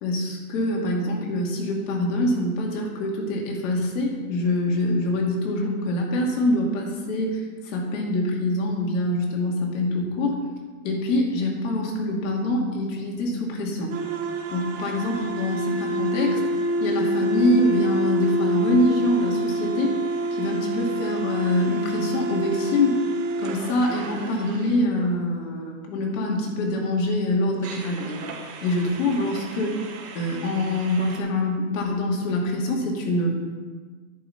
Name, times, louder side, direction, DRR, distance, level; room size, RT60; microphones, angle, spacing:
voice 1, 0.0-10.4 10.8-13.9 14.5-16.4 16.8-19.9 20.3-23.0 23.4-28.2 28.6-29.8 30.1-33.3, left 1 dB, 55° left, 0 dB, 2.5 m, -25 dB
sound 1, 13.9-24.8 27.6-31.2, right 1 dB, 30° right, 1.4 m, -28 dB
10.5 x 5.5 x 5.8 m, 1.4 s
hypercardioid pair, 130°, 45 cm